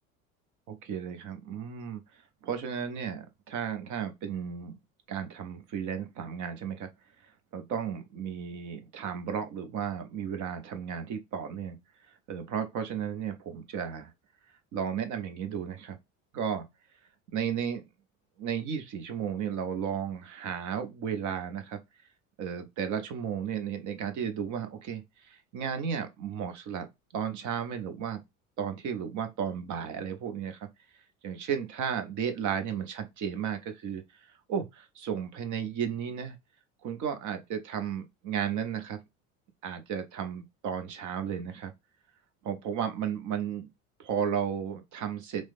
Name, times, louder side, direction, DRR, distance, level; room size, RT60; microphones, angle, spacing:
voice 1, 0.7-2.0 2.4-4.8 5.1-6.9 7.5-11.8 12.3-14.1 14.7-16.0 16.3-16.6 17.3-17.9 18.4-21.8 22.4-26.9 27.1-28.2 28.6-30.7 31.2-34.0 34.3-36.4 36.8-39.0 39.6-41.7 42.4-43.7 44.0-45.5, right 8 dB, 45° right, 0.8 m, -34 dB
3.1 x 2.1 x 2.4 m
hypercardioid pair, 70°, 42 cm